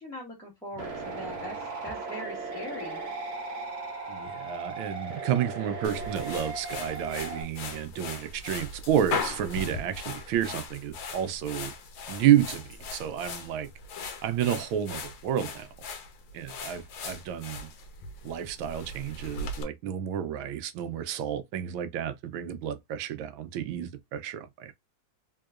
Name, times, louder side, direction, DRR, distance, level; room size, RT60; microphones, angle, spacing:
voice 1, 0.0-3.0, equal, ahead, 1.2 m, -41 dB
sound 1, 0.8-7.4, right 3 dB, 40° right, 1.1 m, -37 dB
voice 2, 4.1-11.7 12.1-13.7 14.0-15.7 16.3-17.7 18.2-24.7, right 10 dB, 80° right, 1.4 m, -30 dB
sound 2, 5.8-19.6, left 4 dB, 70° left, 1.5 m, -39 dB
3.7 x 3.5 x 2.3 m
omnidirectional pair, 2.2 m